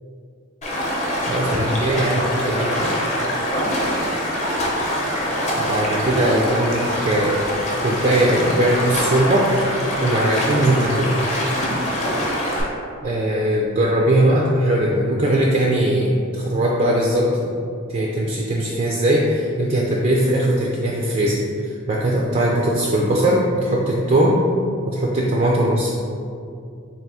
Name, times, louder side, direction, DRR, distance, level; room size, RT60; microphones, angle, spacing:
Stream, 0.6-12.6, equal, 30° left, 0.6 m, -24 dB
voice 1, 1.3-2.7 5.6-7.4 7.8-9.5 10.0-11.1 13.0-17.5 17.9-24.4 24.9-25.9, right 1 dB, 35° right, -3 dB, 0.3 m, -20 dB
3.4 x 2.6 x 4.1 m, 2.4 s
head